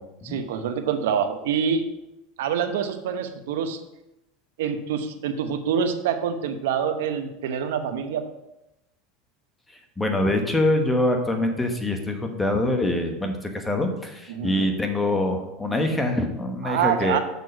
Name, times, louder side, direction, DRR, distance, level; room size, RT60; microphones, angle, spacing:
voice 1, 0.2-1.9 2.4-3.8 4.6-8.2 14.3-14.7 16.6-17.2, right 7 dB, 90° right, 8 dB, 0.9 m, -26 dB
voice 2, 10.0-17.2, left 1 dB, 10° left, 4 dB, 1.1 m, -24 dB
6.8 x 6.2 x 5.2 m, 0.91 s
supercardioid pair, 140°, 0 cm